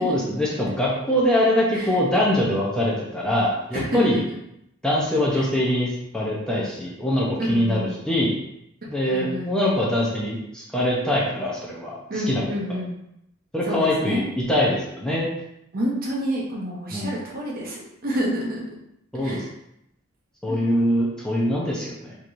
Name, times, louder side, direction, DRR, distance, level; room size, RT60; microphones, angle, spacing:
voice 1, 0.0-4.2 4.8-5.9 6.1-8.3 8.9-12.0 12.3-12.4 13.5-15.3 16.9-17.1 19.1-19.4 20.4-22.2, left 1 dB, 5° left, -5 dB, 0.7 m, -23 dB
voice 2, 3.7-4.2 7.4-7.9 8.9-9.6 12.1-12.9 13.7-14.2 15.7-18.6 19.2-19.5 20.5-20.6, equal, 50° right, -3 dB, 0.9 m, -28 dB
4.3 x 3.2 x 2.6 m, 0.78 s
head